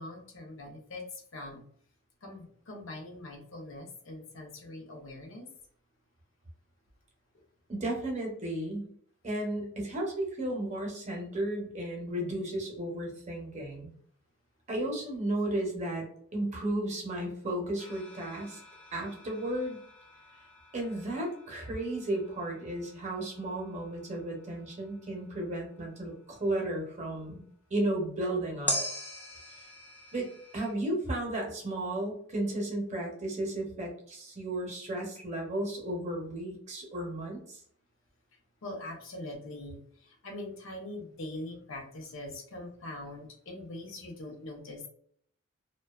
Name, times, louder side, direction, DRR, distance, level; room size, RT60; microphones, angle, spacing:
voice 1, 0.0-1.6 2.2-5.5 38.6-44.9, left 1 dB, 65° left, 2 dB, 0.6 m, -42 dB
voice 2, 7.7-8.9 9.2-13.9 14.7-18.6 18.9-19.8 20.7-27.4 27.7-28.8 30.1-30.3 30.5-37.6, right 1 dB, 35° right, 0 dB, 0.7 m, -34 dB
sound 1, 17.8-27.2 28.7-30.7, equal, 10° left, 0.4 m, -42 dB
2.4 x 2.2 x 2.3 m, 0.62 s
head